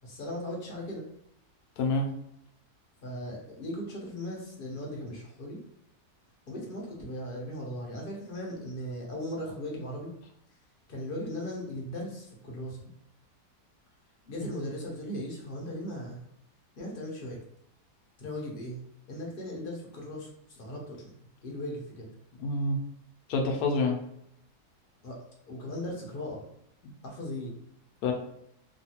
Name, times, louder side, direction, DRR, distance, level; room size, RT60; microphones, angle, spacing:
voice 1, 0.0-1.1 3.0-5.6 6.5-10.1 10.9-12.8 14.2-16.2 16.8-17.4 18.2-18.8 19.1-20.3 20.6-21.1 21.4-22.1 25.0-25.2 25.5-26.5 27.0-27.5, left 1 dB, 50° left, -2 dB, 0.7 m, -38 dB
voice 2, 1.8-2.1 22.4-22.8 23.3-24.0 26.8-26.9 28.0-28.1, left 2 dB, 75° left, 3 dB, 1.1 m, -27 dB
3.2 x 2.3 x 2.8 m, 0.77 s
omnidirectional pair, 1.7 m